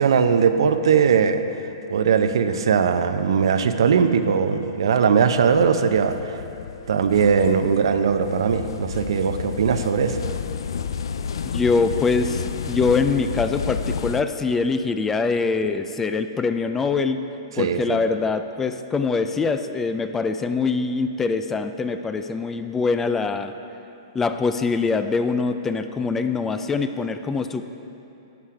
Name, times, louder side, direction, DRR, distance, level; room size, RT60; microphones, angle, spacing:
voice 1, 0.0-1.4 1.9-6.3 6.9-10.2 17.6-18.0, right 6 dB, 80° right, 9 dB, 0.6 m, -20 dB
sound 1, 5.5-14.2, left 6 dB, 85° left, 0.4 m, -31 dB
voice 2, 11.5-17.2 17.6-23.5 24.1-27.6, left 4 dB, 10° left, 9 dB, 0.3 m, -23 dB
12.0 x 8.3 x 4.8 m, 2.9 s
hypercardioid pair, 150°, 2 cm